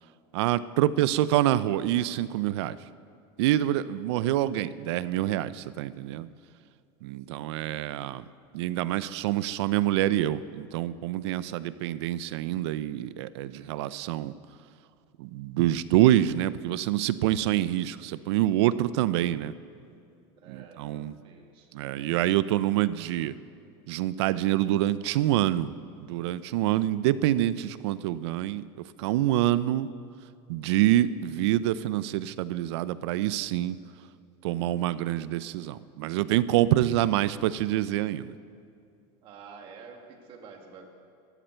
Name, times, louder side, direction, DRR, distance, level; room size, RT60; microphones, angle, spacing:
voice 1, 0.3-2.8 3.4-6.3 7.0-8.2 8.5-14.3 15.2-19.5 20.5-21.1 21.7-23.3 23.9-25.7 26.0-28.7 29.0-29.9 30.5-33.8 34.4-38.3, right 13 dB, 75° right, 16 dB, 0.5 m, -26 dB
voice 2, 11.4-11.8 20.4-21.8 39.2-40.9, right 5 dB, 35° right, 3 dB, 1.9 m, -49 dB
17.5 x 13.0 x 4.5 m, 2.5 s
supercardioid pair, 165°, 14 cm